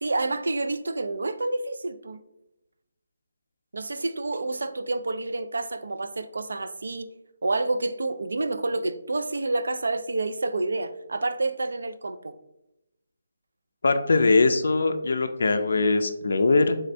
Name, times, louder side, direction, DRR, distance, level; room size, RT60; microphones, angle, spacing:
voice 1, 0.0-2.2 3.7-7.1 7.4-12.4, right 2 dB, 80° right, 0.3 m, -28 dB
voice 2, 13.8-16.8, left 3 dB, 70° left, 0.3 m, -21 dB
3.4 x 3.2 x 2.5 m
hypercardioid pair, 170°, 0 cm